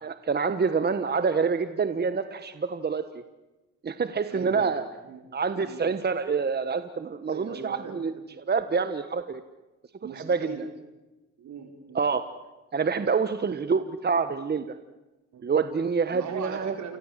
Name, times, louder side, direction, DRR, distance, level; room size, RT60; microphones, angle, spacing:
voice 1, 0.0-3.0 3.8-4.8 5.3-8.1 8.5-9.4 10.1-10.5 11.9-12.2 12.7-14.7 15.4-16.7, right 5 dB, 35° right, 10 dB, 1.4 m, -27 dB
voice 2, 4.3-5.2 5.6-5.8 7.2-8.2 10.0-10.7 11.4-12.0 15.3-15.5 16.1-17.0, right 6 dB, 70° right, 4 dB, 5.5 m, -39 dB
29.0 x 24.5 x 7.6 m, 1.1 s
cardioid pair, 90°, 30 cm